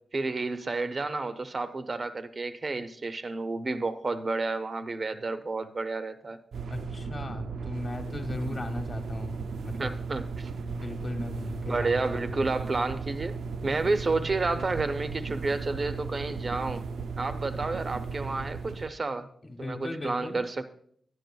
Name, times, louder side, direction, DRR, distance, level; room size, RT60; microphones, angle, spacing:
voice 1, 0.1-6.4 9.8-10.5 11.7-16.9 17.2-19.3 19.6-20.6, right 3 dB, 40° right, 9 dB, 0.6 m, -31 dB
sound 1, 6.5-18.9, right 4 dB, 75° right, 0.3 m, -36 dB
voice 2, 6.7-9.9 10.6-12.4 19.4-20.4, left 2 dB, 40° left, 5 dB, 1.0 m, -37 dB
11.0 x 10.5 x 2.3 m, 0.63 s
wide cardioid pair, 125°, 0 cm